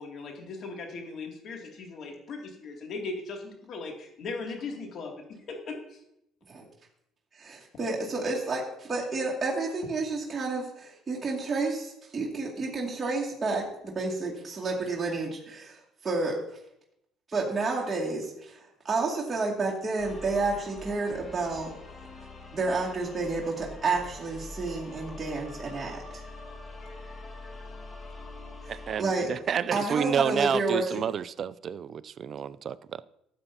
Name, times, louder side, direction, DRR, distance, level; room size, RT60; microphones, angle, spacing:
voice 1, 0.0-5.1 5.5-5.7, left 3 dB, 55° left, 2.5 m, -38 dB
voice 2, 7.3-16.4 17.3-21.7 22.5-26.2 28.6-28.7 29.0-29.3 29.7-31.0, right 3 dB, 25° right, 2.3 m, -30 dB
sound 1, 20.0-29.9, left 2 dB, 35° left, 1.7 m, -44 dB
voice 3, 28.7-33.0, right 8 dB, 50° right, 0.4 m, -30 dB
12.5 x 8.1 x 2.8 m
hypercardioid pair, 65°, 0 cm